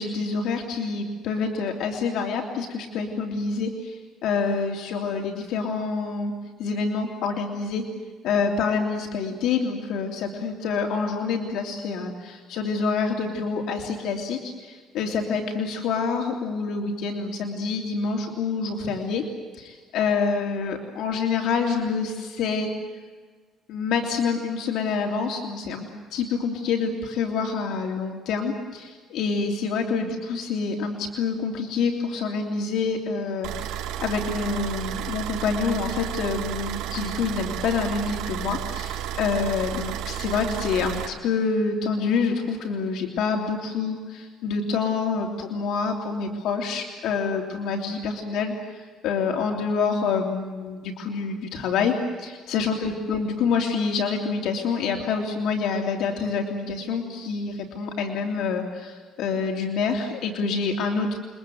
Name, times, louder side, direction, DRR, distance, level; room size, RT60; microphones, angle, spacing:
voice 1, 0.0-3.9 4.2-6.3 6.6-7.8 8.2-19.2 19.5-22.7 23.7-61.2, left 5 dB, 75° left, 2 dB, 3.0 m, -27 dB
sound 1, 33.4-41.1, right 11 dB, 85° right, 3.8 m, -32 dB
29.5 x 22.5 x 7.8 m, 1.4 s
cardioid pair, 145°, 0 cm